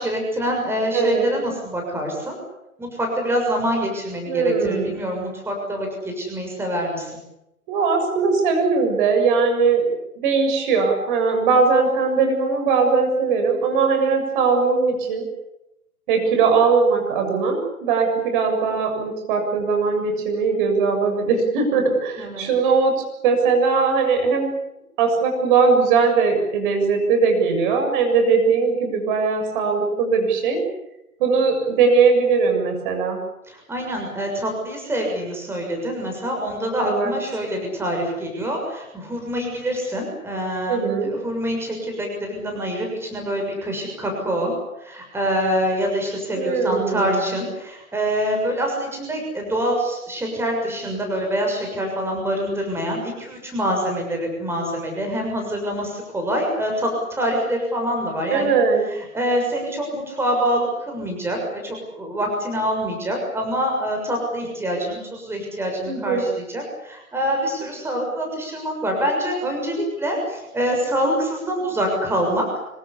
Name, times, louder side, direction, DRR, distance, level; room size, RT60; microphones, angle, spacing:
voice 1, 0.0-2.3 2.8-7.1 22.2-22.5 33.5-44.5 44.8-58.5 59.1-72.6, equal, 5° right, 1 dB, 6.7 m, -25 dB
voice 2, 0.9-1.3 4.3-4.9 7.7-15.3 16.1-24.5 25.0-30.6 31.2-33.2 36.8-37.1 40.7-41.1 46.3-47.2 58.1-58.9 65.9-66.3, right 5 dB, 35° right, 4 dB, 6.9 m, -20 dB
26.0 x 24.0 x 8.5 m, 0.88 s
figure-of-eight pair, 125°, 43 cm